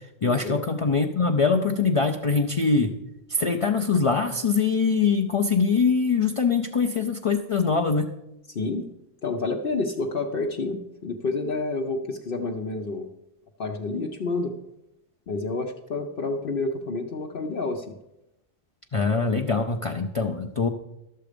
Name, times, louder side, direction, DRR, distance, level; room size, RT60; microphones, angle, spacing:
voice 1, 0.2-2.9 3.3-8.1 18.9-20.7, left 4 dB, 40° left, 4 dB, 0.6 m, -23 dB
voice 2, 8.5-8.9 9.2-13.1 13.6-14.5 15.3-17.9, left 3 dB, 60° left, 2 dB, 0.9 m, -29 dB
12.0 x 7.6 x 5.1 m, 0.89 s
omnidirectional pair, 1.1 m